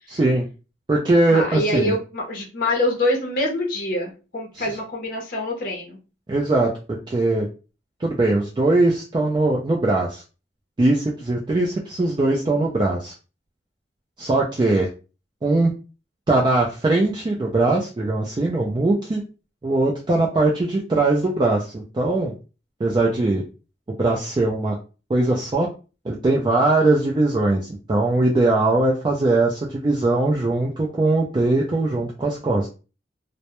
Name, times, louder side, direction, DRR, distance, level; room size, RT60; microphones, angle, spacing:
voice 1, 0.1-0.5 0.9-1.9 4.6-4.7 6.3-6.7 7.1-7.5 8.0-10.2 10.8-13.1 14.2-14.9 15.4-15.7 16.3-19.2 19.6-22.3 22.8-23.4 24.0-24.8 25.1-25.7 26.0-27.6 27.9-32.7, right 2 dB, 25° right, -2 dB, 0.3 m, -20 dB
voice 2, 1.3-6.0, left 1 dB, 50° left, 0 dB, 0.6 m, -25 dB
2.1 x 2.0 x 2.8 m, 0.33 s
head